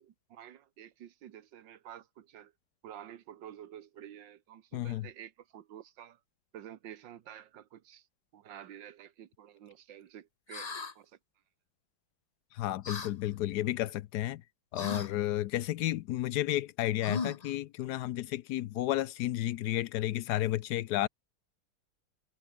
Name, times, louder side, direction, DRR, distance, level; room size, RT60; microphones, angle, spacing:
voice 1, 0.0-2.5 2.8-6.2 6.5-8.1 8.3-11.2, right 10 dB, 65° right, 1.7 m, -50 dB
voice 2, 4.7-5.1 12.5-14.4 14.7-21.1, left 14 dB, 80° left, 0.9 m, -32 dB
sound 1, 10.5-10.9 12.8-13.1 14.7-15.1 17.0-17.5, left 4 dB, 30° left, 0.7 m, -37 dB
omnidirectional pair, 2.3 m